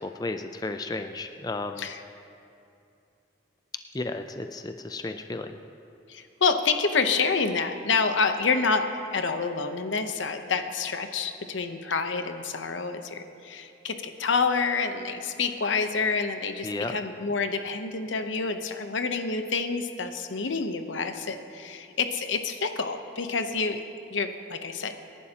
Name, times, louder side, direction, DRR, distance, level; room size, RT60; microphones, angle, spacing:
voice 1, 0.0-1.9 3.9-5.6 16.6-16.9, left 2 dB, 20° left, 7 dB, 0.4 m, -33 dB
voice 2, 6.1-23.8 24.1-24.9, left 4 dB, 90° left, 7 dB, 0.9 m, -28 dB
27.0 x 11.0 x 2.9 m, 2.7 s
head